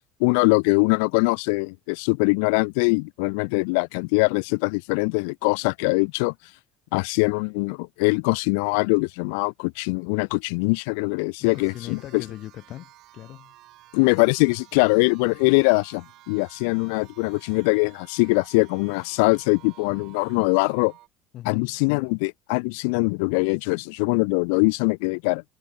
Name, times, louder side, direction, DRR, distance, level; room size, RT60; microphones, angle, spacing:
voice 1, 0.2-6.3 6.9-12.2 13.9-20.9 21.4-25.4, left 33 dB, 85° left, 1.0 m, -22 dB
voice 2, 11.4-13.5 21.3-21.8, left 13 dB, 55° left, 5.8 m, -39 dB
sound 1, 11.4-21.1, right 16 dB, 65° right, 4.3 m, -52 dB
cardioid pair, 115°, 0 cm